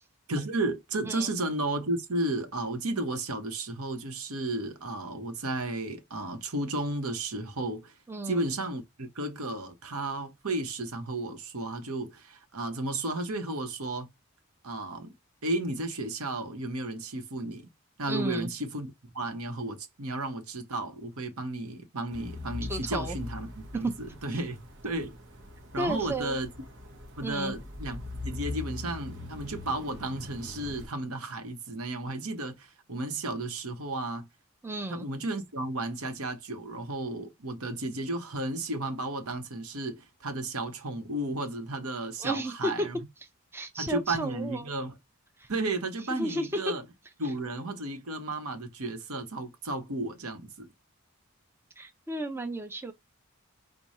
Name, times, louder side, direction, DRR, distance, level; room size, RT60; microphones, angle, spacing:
voice 1, 0.3-7.9 8.3-14.1 14.6-15.1 15.4-17.7 18.0-18.9 19.1-23.9 24.2-24.6 24.8-25.1 25.7-26.5 27.2-34.3 34.9-43.0 43.8-44.9 45.5-46.8 47.2-50.7, right 2 dB, 85° right, 1.1 m, -33 dB
voice 2, 8.1-8.4 18.1-18.5 22.6-23.2 23.7-23.9 24.3-24.4 25.8-26.4 27.2-27.5 34.6-35.1 42.2-42.7 43.5-44.7 45.4-45.5 46.1-46.5 47.2-47.3 51.8-52.9, right 2 dB, 10° right, 0.5 m, -33 dB
sound 1, 22.1-30.9, left 2 dB, 55° right, 0.9 m, -41 dB
4.9 x 2.3 x 4.1 m
head